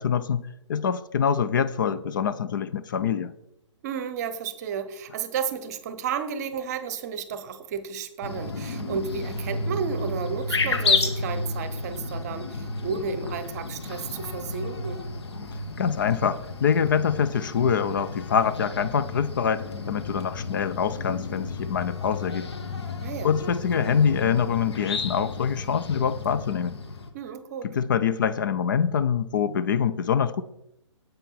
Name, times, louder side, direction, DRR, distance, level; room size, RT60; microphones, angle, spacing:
voice 1, 0.0-3.3 15.8-22.5 23.2-26.7 27.6-30.4, left 7 dB, 40° left, 13 dB, 0.5 m, -25 dB
voice 2, 3.8-15.0 23.0-23.3 27.1-27.7, right 6 dB, 30° right, 12 dB, 0.9 m, -32 dB
sound 1, 8.2-27.1, left 3 dB, 55° left, 1.4 m, -32 dB
9.0 x 8.0 x 4.2 m, 0.80 s
figure-of-eight pair, 130°, 16 cm